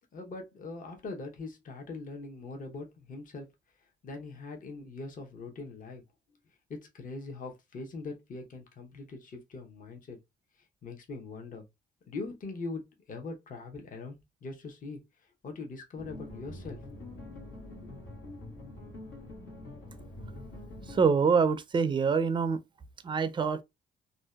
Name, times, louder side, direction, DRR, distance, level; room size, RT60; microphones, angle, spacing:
voice 1, 0.1-3.5 4.0-6.0 6.7-10.2 10.8-11.6 12.1-15.0 15.4-16.8, left 3 dB, 45° left, 0.7 m, -41 dB
sound 1, 16.0-21.1, left 1 dB, 85° left, 1.2 m, -45 dB
voice 2, 20.9-22.6 23.0-23.6, right 5 dB, 25° right, 0.4 m, -25 dB
2.6 x 2.1 x 2.2 m
cardioid pair, 90°, 20 cm